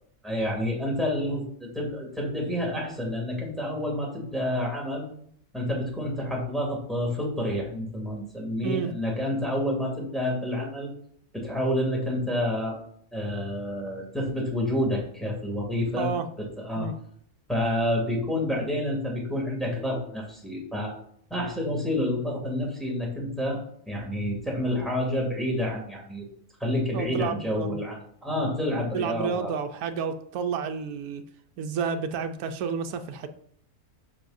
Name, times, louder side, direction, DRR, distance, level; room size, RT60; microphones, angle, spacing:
voice 1, 0.2-5.0 5.5-10.9 11.3-12.8 13.1-16.1 16.4-16.9 17.5-20.9 21.3-26.3 26.6-29.5, left 1 dB, ahead, -3 dB, 2.4 m, -29 dB
voice 2, 16.0-16.3 16.8-17.0 26.9-27.8 28.9-31.2 31.6-33.3, right 6 dB, 90° right, 8 dB, 1.2 m, -30 dB
9.7 x 6.2 x 2.6 m, 0.64 s
omnidirectional pair, 1.5 m